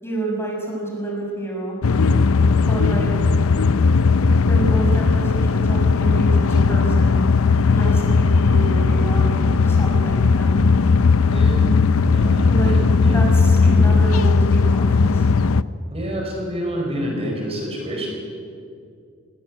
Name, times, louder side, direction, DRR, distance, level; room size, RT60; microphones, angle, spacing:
voice 1, 0.0-1.8 2.7-3.1 4.5-7.2 7.7-10.6 12.5-12.7 13.1-15.3, right 2 dB, 10° left, -2 dB, 6.4 m, -28 dB
sound 1, 1.8-15.6, left 4 dB, 80° left, 0.6 m, -17 dB
voice 2, 11.3-11.7 12.0-13.2 13.6-13.9 15.9-18.1, equal, 30° right, 0 dB, 4.5 m, -28 dB
20.5 x 18.0 x 9.5 m, 2.3 s
head